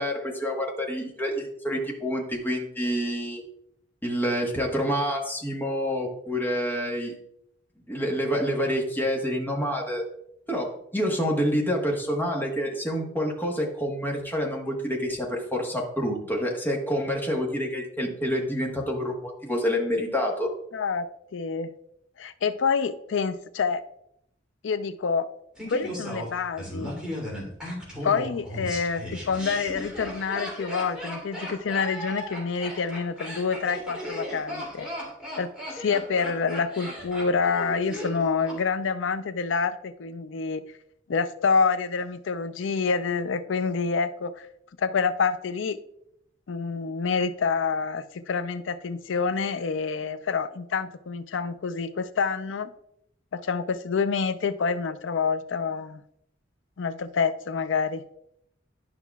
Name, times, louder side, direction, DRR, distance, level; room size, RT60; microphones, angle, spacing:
voice 1, 0.0-3.4 4.0-7.1 7.9-10.0 10.5-20.5, equal, 10° left, -1 dB, 1.3 m, -27 dB
voice 2, 20.7-21.7 22.2-23.8 24.6-25.3 25.7-27.0 28.0-34.9 35.4-40.6 41.1-44.5 44.8-45.8 46.5-52.7 53.3-56.0 56.8-58.0, left 5 dB, 75° left, 12 dB, 0.5 m, -27 dB
Laughter, 25.6-38.6 38.8-38.9, equal, 5° right, 2.7 m, -36 dB
11.0 x 5.5 x 2.3 m, 0.76 s
head